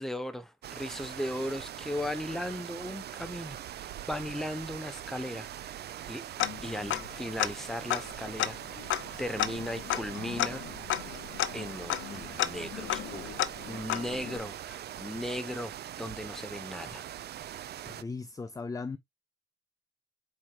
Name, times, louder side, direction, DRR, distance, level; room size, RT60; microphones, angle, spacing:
voice 1, 0.0-6.2 6.6-8.9 9.2-10.7 11.5-13.4 13.7-17.1, left 1 dB, ahead, 0.8 m, -37 dB
sound 1, 0.6-18.0, right 11 dB, 55° right, 0.5 m, -42 dB
Tick-tock, 6.4-7.1 7.4-7.5 7.9-14.4, left 12 dB, 75° left, 0.6 m, -33 dB
voice 2, 6.7-7.1 17.9-19.0, left 4 dB, 15° left, 0.5 m, -39 dB
4.6 x 4.4 x 2.3 m
cardioid pair, 90°, 20 cm